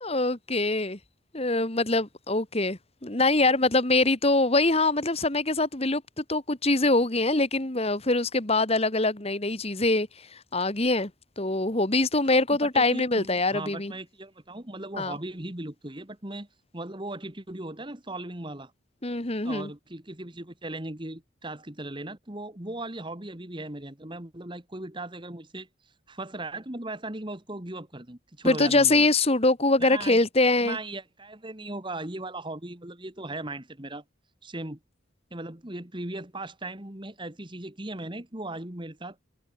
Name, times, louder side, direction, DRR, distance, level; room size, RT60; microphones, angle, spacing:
voice 1, 0.0-1.0 1.3-11.1 11.4-13.9 15.0-15.2 19.0-19.7 28.4-30.8, left 2 dB, 30° left, 1.9 m, -24 dB
voice 2, 12.6-16.5 16.7-18.7 19.4-25.7 26.1-29.1 29.8-34.0 34.4-34.8 35.3-39.2, right 2 dB, 25° right, 1.9 m, -38 dB
head